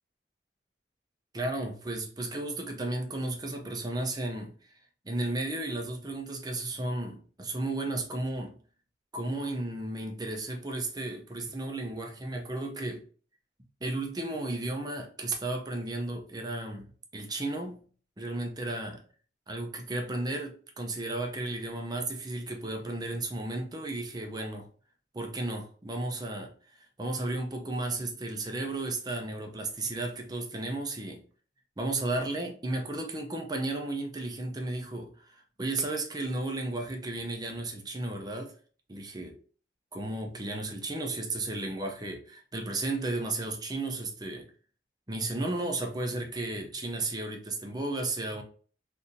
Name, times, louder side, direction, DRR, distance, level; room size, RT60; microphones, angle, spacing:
voice 1, 1.3-4.5 5.0-8.6 9.1-13.0 13.8-17.9 18.2-19.0 19.5-24.7 25.1-26.5 27.0-31.2 31.8-38.5 38.9-39.4 39.9-44.5 45.1-48.4, right 2 dB, 25° right, 3 dB, 0.6 m, -34 dB
3.7 x 2.7 x 2.6 m, 0.41 s
head